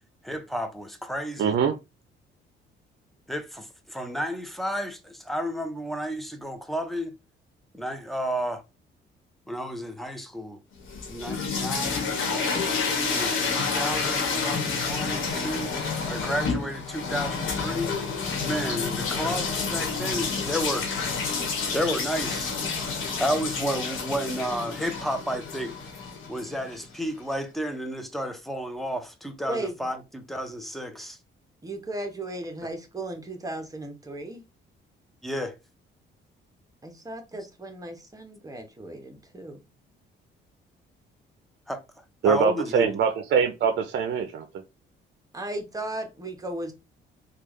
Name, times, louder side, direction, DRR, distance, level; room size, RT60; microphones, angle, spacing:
voice 1, 0.2-1.5 3.3-7.1 7.7-8.6 9.5-10.6 11.1-12.1 13.1-15.7 16.1-17.9 18.4-21.0 21.7-22.5 23.2-25.7 26.3-31.2 35.2-35.5 41.7-41.8 42.2-42.9, equal, ahead, 0.7 m, -31 dB
voice 2, 1.4-1.8 42.2-44.5, right 6 dB, 60° right, 0.5 m, -23 dB
sound 1, 10.8-26.8, left 5 dB, 80° left, 1.2 m, -29 dB
voice 3, 29.5-29.9 31.6-34.4 36.8-39.6 45.3-46.7, right 1 dB, 15° right, 1.0 m, -36 dB
3.4 x 2.4 x 3.1 m
cardioid pair, 90°, 20 cm